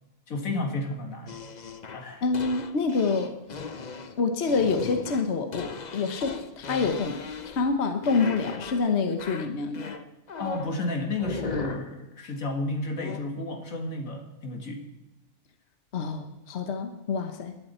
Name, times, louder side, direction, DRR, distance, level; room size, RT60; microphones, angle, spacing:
voice 1, 0.3-1.4 1.9-2.2 10.4-14.8, left 2 dB, 80° left, 4 dB, 2.3 m, -32 dB
sound 1, 1.3-7.7 8.0-8.9 9.2-10.8 11.2-11.9 13.0-13.2, left 5 dB, 40° left, 0.8 m, -37 dB
voice 2, 2.2-3.3 4.2-9.9 15.9-17.5, left 4 dB, 55° left, 7 dB, 1.3 m, -27 dB
19.0 x 11.5 x 4.4 m, 1.0 s
omnidirectional pair, 1.4 m